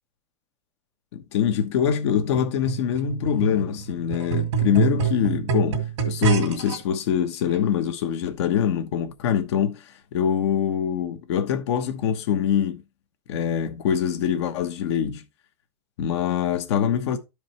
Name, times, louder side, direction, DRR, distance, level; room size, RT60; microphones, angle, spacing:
voice 1, 1.1-12.8 13.3-15.2 16.0-17.2, left 8 dB, 70° left, 1.1 m, -24 dB
sound 1, 2.4-6.8 7.5-7.6, right 7 dB, 90° right, 2.0 m, -26 dB
11.5 x 5.0 x 3.0 m
supercardioid pair, 135°, 15 cm